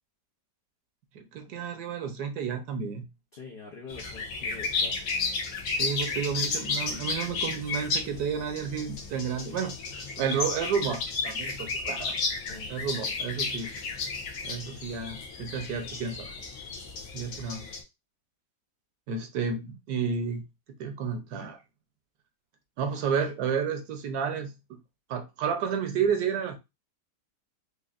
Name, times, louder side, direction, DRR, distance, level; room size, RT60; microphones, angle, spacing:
voice 1, 1.1-3.0 5.7-9.7 10.2-12.2 12.7-13.7 14.4-16.3 17.1-17.7 19.1-20.4 20.8-21.6 22.8-24.5 25.1-26.6, right 6 dB, 70° right, 1.3 m, -31 dB
voice 2, 3.3-5.1 12.5-12.7 13.0-13.1, left 4 dB, 55° left, 0.6 m, -45 dB
sound 1, 3.9-17.8, left 4 dB, 80° left, 1.6 m, -33 dB
5.2 x 2.6 x 2.4 m
omnidirectional pair, 1.9 m